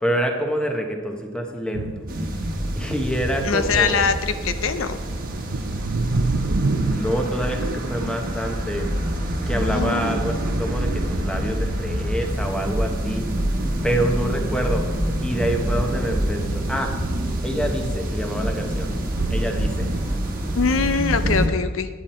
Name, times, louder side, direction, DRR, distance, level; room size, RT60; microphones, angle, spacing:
voice 1, 0.0-1.9 2.8-4.0 6.2-8.9 9.5-13.3 13.8-14.8 15.2-16.4 16.7-16.9 17.4-18.9 19.3-19.9, equal, 5° left, 2 dB, 1.1 m, -26 dB
sound 1, 1.7-2.2 2.8-3.5 3.8-12.3 12.6-17.9 18.2-21.5, right 3 dB, 80° right, 0.6 m, -31 dB
sound 2, 2.1-21.5, equal, 45° right, 1.2 m, -27 dB
voice 2, 3.4-5.0 9.5-10.2 14.2-14.3 20.6-21.9, left 5 dB, 70° left, 10 dB, 0.5 m, -23 dB
sound 3, 12.2-21.0, right 1 dB, 10° right, 0.5 m, -34 dB
9.7 x 9.2 x 4.3 m, 1.5 s
head